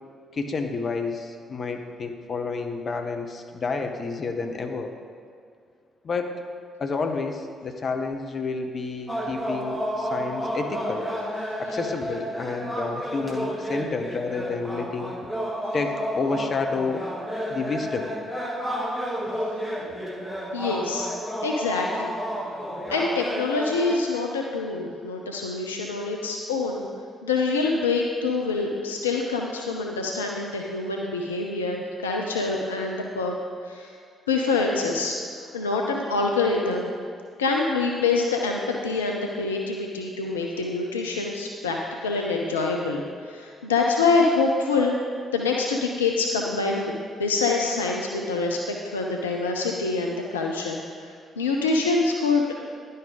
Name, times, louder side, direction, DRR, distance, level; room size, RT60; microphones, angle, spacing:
voice 1, 0.3-4.9 6.0-6.4 6.8-11.1 11.6-15.1 15.7-17.1 17.5-18.1, left 4 dB, 45° left, 5 dB, 0.7 m, -30 dB
sound 1, 9.1-24.0, equal, ahead, 1.5 m, -31 dB
voice 2, 20.5-21.1 21.4-22.1 22.9-26.9 27.2-33.4 33.7-33.9 34.3-35.1 35.5-36.9 37.4-45.0 45.3-46.9 47.2-52.4, left 3 dB, 80° left, 0 dB, 0.4 m, -25 dB
10.5 x 5.4 x 3.7 m, 2.2 s
figure-of-eight pair, 40°, 0 cm